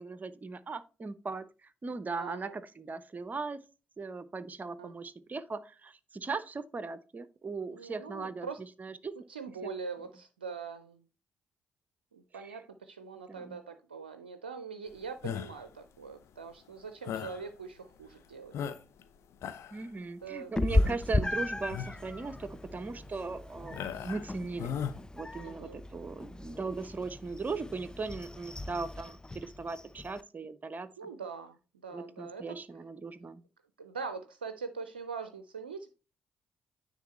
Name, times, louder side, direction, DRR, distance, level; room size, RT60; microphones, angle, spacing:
voice 1, 0.0-3.6 4.0-9.2 9.6-9.7 12.3-12.6 13.3-13.6 19.7-24.7 25.1-31.1 31.9-33.4, right 4 dB, 35° right, 0.7 m, -39 dB
voice 2, 2.1-2.5 4.8-4.9 7.7-8.6 9.3-11.0 12.1-18.5 20.2-20.5 20.8-20.9 25.4-25.8 31.0-31.6 31.8-32.6 33.8-35.9, right 5 dB, 90° right, 0.4 m, -42 dB
sound 1, 15.2-15.7 17.0-17.4 18.0-18.1 18.5-19.0 19.3-19.8 20.7-21.0 21.6-22.0 22.5-22.7 23.7-24.3 24.6-25.0, left 8 dB, 60° left, 0.8 m, -37 dB
Meow, 20.6-30.2, left 2 dB, 15° left, 0.5 m, -35 dB
9.4 x 3.8 x 4.1 m
hypercardioid pair, 40°, 5 cm